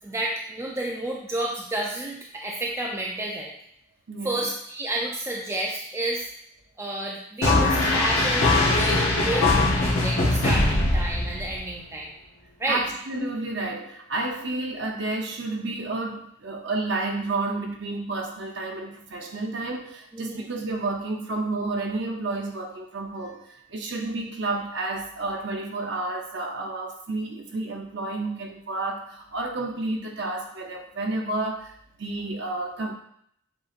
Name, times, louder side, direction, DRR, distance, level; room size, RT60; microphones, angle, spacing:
voice 1, 0.0-3.5 4.2-6.3 6.8-12.1 12.6-12.8 20.1-20.5, right 1 dB, 15° right, -2 dB, 0.4 m, -30 dB
voice 2, 4.1-4.5 12.7-32.9, right 2 dB, 55° right, 2 dB, 0.7 m, -31 dB
sound 1, 7.4-11.7, left 2 dB, 80° left, 1.0 m, -21 dB
7.6 x 2.9 x 2.5 m, 0.70 s
head